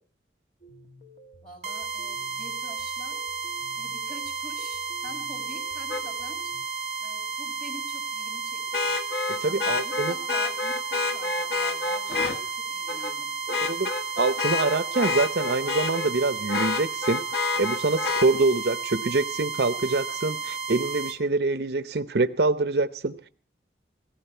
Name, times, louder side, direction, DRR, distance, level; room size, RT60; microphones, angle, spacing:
sound 1, 0.6-6.7, right 1 dB, 45° left, 1.8 m, -51 dB
voice 1, 1.4-3.2 3.8-6.5 7.0-8.9 9.4-13.3, equal, 5° left, 6.2 m, -46 dB
sound 2, 1.6-21.2, right 5 dB, 40° right, 1.7 m, -33 dB
Vehicle horn car horn honking, 5.9-6.0 8.7-12.4 12.9-13.1 13.5-16.1 16.5-18.3 20.1-20.2, left 3 dB, 75° left, 1.4 m, -28 dB
voice 2, 9.3-10.1 13.5-13.9 14.2-23.3, right 3 dB, 70° right, 0.7 m, -25 dB
17.5 x 15.5 x 4.4 m
head